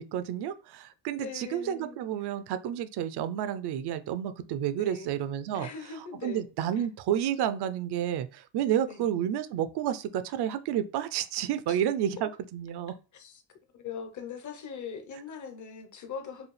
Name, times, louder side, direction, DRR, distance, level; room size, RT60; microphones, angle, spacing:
voice 1, 0.0-5.7 6.2-12.9, right 10 dB, 65° right, 0.5 m, -30 dB
voice 2, 1.2-2.0 2.3-2.4 4.8-5.2 5.5-6.4 6.7-6.9 8.9-9.1 11.7-11.8 13.1-13.4 13.7-16.5, left 6 dB, 45° left, 0.9 m, -41 dB
4.8 x 2.3 x 3.2 m
cardioid pair, 130°, 43 cm